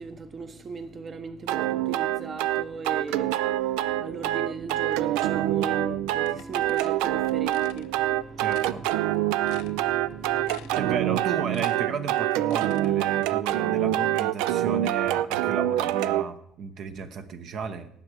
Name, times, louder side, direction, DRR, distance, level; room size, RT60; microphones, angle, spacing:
voice 1, 0.0-8.9 9.4-10.9 17.0-17.1, right 4 dB, 35° right, 9 dB, 1.0 m, -38 dB
sound 1, 1.5-16.2, right 14 dB, 85° right, 0.4 m, -26 dB
Wind instrument woodwind instrument, 6.2-12.2, equal, 5° right, 1.0 m, -51 dB
sound 2, 6.3-7.9 8.4-8.8 9.1-9.2 9.5-10.1 10.5-10.9 11.2-12.9, left 14 dB, 90° left, 0.6 m, -46 dB
voice 2, 8.4-8.9 10.8-17.9, right 6 dB, 60° right, 8 dB, 1.0 m, -34 dB
18.0 x 7.6 x 4.8 m, 0.72 s
cardioid pair, 100°, 0 cm